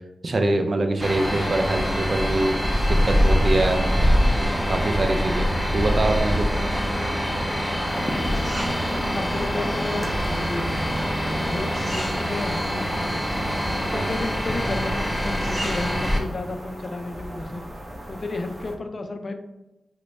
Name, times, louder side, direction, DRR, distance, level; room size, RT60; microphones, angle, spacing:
voice 1, 0.2-2.6 2.9-3.8 4.7-6.5 13.9-14.0, right 2 dB, 55° right, 5 dB, 0.5 m, -24 dB
sound 1, 1.0-16.2, equal, ahead, 0.6 m, -24 dB
sound 2, 7.9-18.7, right 1 dB, 35° right, 0.9 m, -37 dB
voice 2, 9.1-10.9 11.2-13.3 13.7-17.6 18.1-19.3, left 2 dB, 55° left, 7 dB, 0.4 m, -32 dB
3.0 x 2.1 x 4.1 m, 1.0 s
cardioid pair, 50°, 0 cm